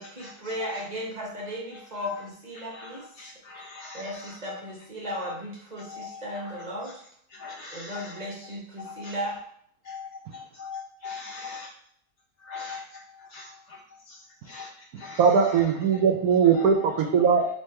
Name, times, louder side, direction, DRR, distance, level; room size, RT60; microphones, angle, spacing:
voice 1, 0.0-3.1 3.9-7.0 7.7-9.4, equal, 35° right, -3 dB, 0.8 m, -36 dB
voice 2, 3.2-4.0 7.4-7.9 10.6-11.7 12.5-12.8 13.3-13.5 14.5-14.7 15.0-15.2, left 4 dB, 55° left, -2 dB, 1.0 m, -39 dB
voice 3, 15.2-17.5, right 6 dB, 75° right, 5 dB, 1.0 m, -20 dB
3.6 x 3.1 x 4.2 m, 0.65 s
omnidirectional pair, 1.7 m